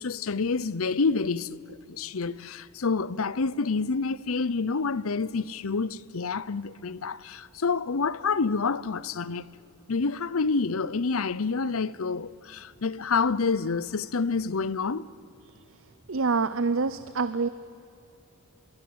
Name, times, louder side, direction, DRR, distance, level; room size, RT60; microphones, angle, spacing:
voice 1, 0.0-9.5 9.9-15.0, left 4 dB, 75° left, 0.8 m, -28 dB
voice 2, 16.1-17.5, right 4 dB, 65° right, 0.7 m, -26 dB
26.0 x 22.5 x 8.8 m
head